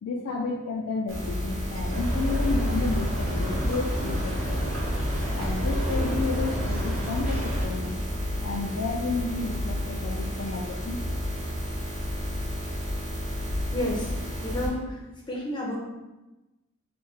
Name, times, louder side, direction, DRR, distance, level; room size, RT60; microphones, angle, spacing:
voice 1, 0.0-4.8 5.3-8.0 8.4-11.2, left 4 dB, 70° left, -1 dB, 0.3 m, -31 dB
sound 1, 1.1-14.7, equal, 65° right, 0.9 m, -31 dB
sound 2, 1.9-7.7, equal, 30° right, 0.7 m, -30 dB
voice 2, 13.7-14.1 14.4-14.9 15.3-15.8, left 1 dB, 20° left, -2 dB, 0.5 m, -30 dB
3.1 x 2.1 x 3.6 m, 1.1 s
head